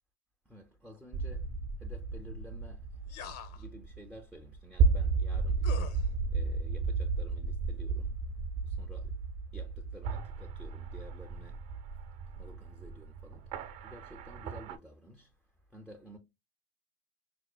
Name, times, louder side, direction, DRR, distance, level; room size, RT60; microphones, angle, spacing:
voice 1, 0.5-16.2, equal, ahead, 0.5 m, -53 dB
sound 1, 1.1-14.8, right 4 dB, 50° right, 0.8 m, -33 dB
sound 2, 3.1-3.7 5.6-6.1, left 8 dB, 45° left, 0.7 m, -43 dB
5.9 x 2.1 x 2.3 m
hypercardioid pair, 100°, 33 cm